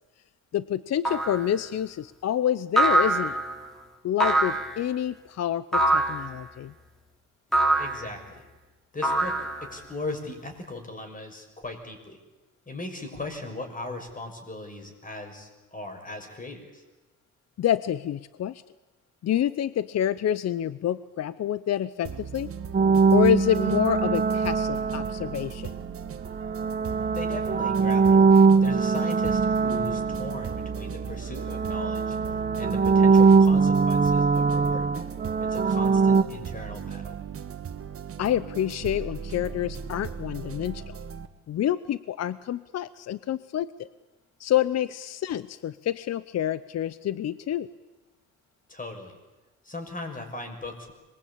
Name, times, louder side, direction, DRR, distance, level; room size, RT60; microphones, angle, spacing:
voice 1, 0.5-3.4 4.0-6.7 17.6-18.6 19.2-22.5 23.1-25.7 38.2-41.0 41.5-43.9 44.4-47.7, left 10 dB, 60° left, 16 dB, 0.8 m, -27 dB
sound 1, 1.1-1.5 2.8-3.5 4.2-4.8 5.7-6.3 7.5-8.0 9.0-9.8, right 2 dB, ahead, 4.2 m, -23 dB
voice 2, 7.8-8.4 8.9-12.2 12.7-16.8 27.1-28.3 28.6-32.1 32.6-35.0 35.4-37.1 48.7-49.2 49.6-50.9, left 2 dB, 25° left, 5 dB, 6.3 m, -38 dB
sound 2, 22.0-41.3, right 7 dB, 50° right, 1.5 m, -38 dB
sound 3, 22.7-25.6 26.3-31.1 31.4-36.2, right 5 dB, 30° right, 1.1 m, -22 dB
25.5 x 22.0 x 8.7 m, 1.1 s
cardioid pair, 90°, 30 cm